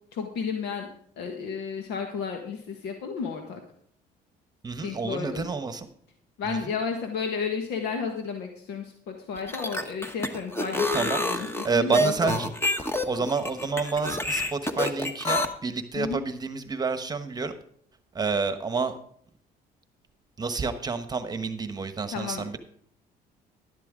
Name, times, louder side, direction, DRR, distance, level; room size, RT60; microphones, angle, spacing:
voice 1, 0.1-0.9 1.2-3.6 4.8-5.5 6.4-12.4 16.0-16.2 22.1-22.5, left 5 dB, 80° left, 4 dB, 1.6 m, -32 dB
voice 2, 4.6-5.9 6.4-6.7 10.9-12.5 13.1-17.5 18.1-18.9 20.4-22.6, right 4 dB, 25° right, 10 dB, 1.1 m, -29 dB
sound 1, 9.4-15.5, left 1 dB, 15° left, 1.2 m, -27 dB
12.0 x 11.5 x 3.7 m, 0.64 s
cardioid pair, 110°, 17 cm